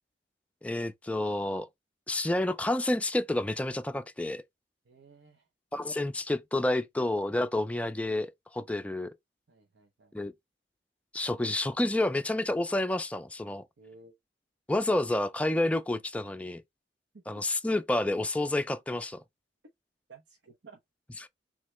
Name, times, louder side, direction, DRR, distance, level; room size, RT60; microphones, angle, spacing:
voice 1, 0.6-1.7 2.1-4.4 5.7-9.1 10.1-10.3 11.1-13.6 14.7-16.6 17.3-19.2 21.2-21.3, left 1 dB, 10° left, 0.4 m, -29 dB
voice 2, 4.9-5.5 9.5-10.1 13.8-14.1 20.1-20.8, right 4 dB, 85° right, 0.8 m, -55 dB
3.7 x 3.2 x 3.1 m
head